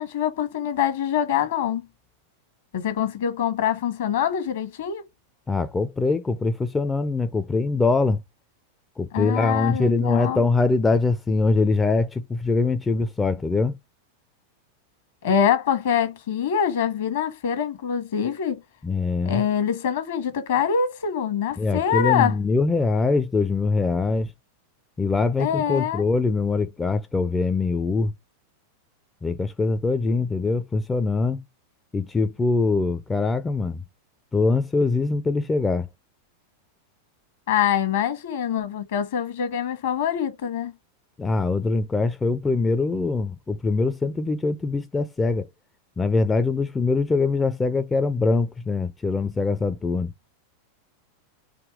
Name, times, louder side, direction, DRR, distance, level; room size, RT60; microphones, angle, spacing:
voice 1, 0.0-1.9 2.7-5.0 9.1-10.4 15.2-18.6 19.2-22.4 25.4-26.0 37.5-40.7, left 8 dB, 55° left, 1.2 m, -24 dB
voice 2, 5.5-8.2 9.0-13.7 18.8-19.4 21.6-24.3 25.0-28.1 29.2-31.4 31.9-33.8 34.3-35.9 41.2-45.5 46.0-50.1, left 3 dB, 10° left, 0.4 m, -23 dB
5.0 x 2.8 x 3.4 m
figure-of-eight pair, 90°, 0 cm